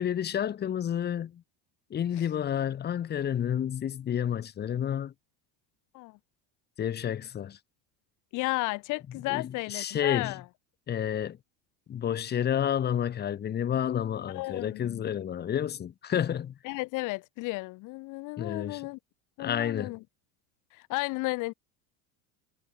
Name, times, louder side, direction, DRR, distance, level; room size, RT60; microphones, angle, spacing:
voice 1, 0.0-1.4 1.9-5.1 6.8-7.6 9.3-10.3 10.9-11.4 11.9-16.5 18.4-18.8 19.4-19.9, left 9 dB, 25° left, 6.3 m, -30 dB
voice 2, 8.3-10.4 14.3-15.1 16.6-19.0 19.4-20.0 20.7-21.5, left 23 dB, 50° left, 5.7 m, -33 dB
cardioid pair, 175°, 39 cm